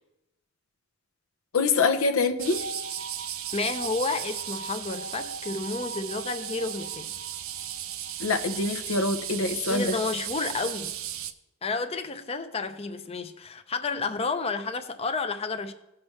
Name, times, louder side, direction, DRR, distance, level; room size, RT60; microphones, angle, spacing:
voice 1, 1.5-2.7 8.2-10.0, left 3 dB, 80° left, 9 dB, 0.8 m, -25 dB
sound 1, 2.4-11.3, right 8 dB, 75° right, 0.6 m, -35 dB
voice 2, 3.5-7.1 9.7-11.0 11.6-15.7, left 4 dB, 30° left, 8 dB, 0.5 m, -31 dB
17.5 x 5.9 x 3.2 m, 0.92 s
head